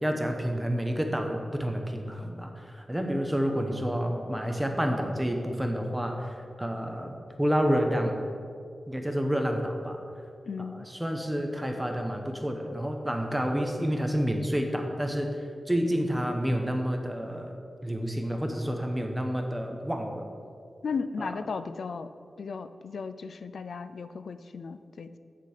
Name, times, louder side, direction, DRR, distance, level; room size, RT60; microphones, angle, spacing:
voice 1, 0.0-8.2 8.9-10.0 10.6-15.4 15.7-17.5 17.8-20.3 21.2-21.3, equal, 5° right, 3 dB, 1.1 m, -29 dB
voice 2, 10.5-10.9 20.8-22.1 22.4-25.2, left 5 dB, 80° left, 12 dB, 0.5 m, -35 dB
7.6 x 7.4 x 6.6 m, 2.3 s
wide cardioid pair, 110°, 0 cm